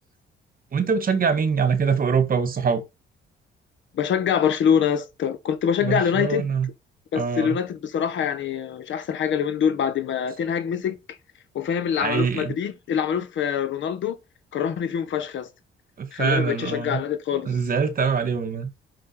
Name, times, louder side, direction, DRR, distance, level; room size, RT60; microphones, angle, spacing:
voice 1, 0.7-2.8 5.8-6.7 7.1-7.6 12.0-12.6 16.0-17.0 17.5-18.7, right 6 dB, 45° right, 1.8 m, -23 dB
voice 2, 3.9-6.5 7.1-11.2 11.5-14.2 14.5-15.5 16.1-17.5, left 8 dB, 70° left, 1.5 m, -25 dB
6.1 x 6.0 x 4.5 m
cardioid pair, 90°, 20 cm